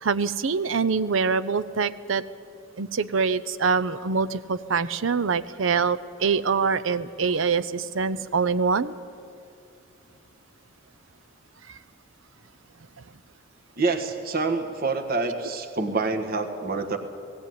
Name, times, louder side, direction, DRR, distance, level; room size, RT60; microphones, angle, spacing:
voice 1, 0.0-2.2 2.8-8.9 11.7-11.8, right 5 dB, 75° right, 16 dB, 0.7 m, -24 dB
voice 2, 13.8-17.0, right 3 dB, 50° right, 6 dB, 1.5 m, -27 dB
17.5 x 17.0 x 9.5 m, 2.5 s
head